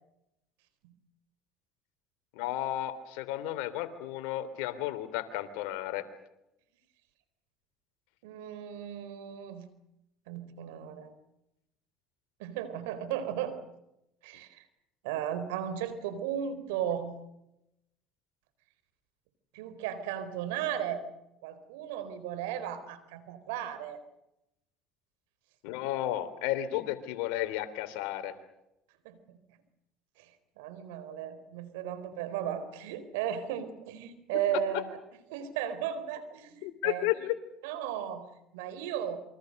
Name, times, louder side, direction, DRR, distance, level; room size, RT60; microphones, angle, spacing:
voice 1, 2.3-6.0 25.6-28.3 36.6-37.3, left 14 dB, 80° left, 11 dB, 3.2 m, -33 dB
voice 2, 8.2-9.7 10.3-11.1 12.4-13.5 14.2-14.6 15.0-17.1 19.5-21.0 21.4-24.0 29.0-29.4 30.2-30.3 30.6-35.0 35.3-37.1 37.6-38.3 38.5-39.2, right 9 dB, 85° right, 12 dB, 4.1 m, -35 dB
28.0 x 24.5 x 6.6 m, 0.86 s
supercardioid pair, 85°, 0 cm